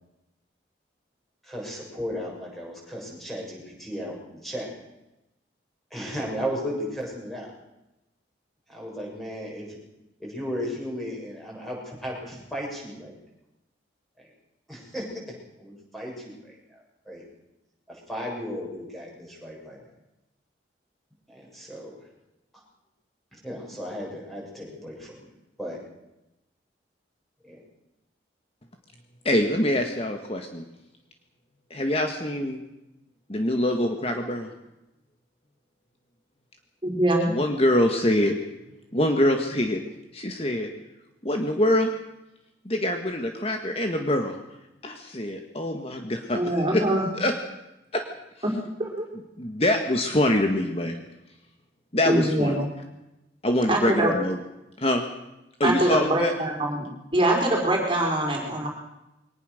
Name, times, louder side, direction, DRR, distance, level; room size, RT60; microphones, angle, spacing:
voice 1, 1.4-4.7 5.9-7.5 8.7-9.8 10.2-13.1 14.2-14.3 14.7-17.3 17.9-19.9 21.3-22.0 22.5-22.6 23.3-25.2 25.6-25.8 27.4-27.6, equal, ahead, -2 dB, 7.3 m, -35 dB
voice 2, 29.2-30.6 31.7-32.6 33.3-34.5 37.3-38.3 38.9-39.8 40.1-40.7 41.2-41.9 42.6-44.3 44.8-46.8 47.1-47.4 47.9-48.0 49.4-51.0 51.9-52.5 53.4-54.4 54.8-55.1 55.6-56.3, left 1 dB, 30° left, 4 dB, 1.7 m, -24 dB
voice 3, 36.8-37.3 46.3-47.0 48.4-48.5 48.8-49.1 52.0-52.7 53.7-54.1 55.6-58.7, right 1 dB, 25° right, 0 dB, 4.9 m, -24 dB
23.0 x 19.5 x 6.6 m, 0.94 s
head